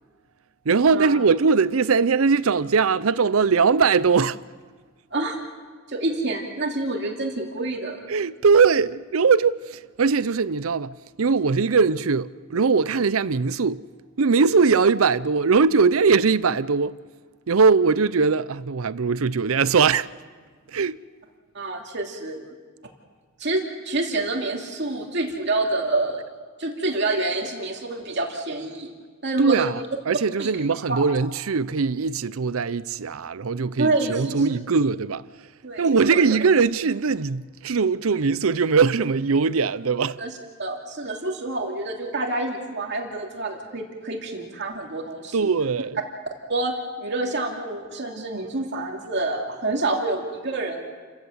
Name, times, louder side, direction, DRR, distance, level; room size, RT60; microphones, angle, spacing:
voice 1, 0.7-4.4 8.1-13.8 14.2-17.0 17.5-20.1 20.7-21.0 29.4-35.2 35.8-40.2 45.3-46.0, right 5 dB, 85° right, 0.6 m, -21 dB
voice 2, 5.1-5.4 5.9-8.1 21.5-22.5 23.4-26.2 26.6-28.9 29.2-29.7 30.4-30.5 30.9-31.0 33.8-34.4 35.6-36.2 40.2-45.5 46.5-50.8, right 2 dB, 55° right, 2.7 m, -27 dB
29.5 x 15.0 x 8.1 m
head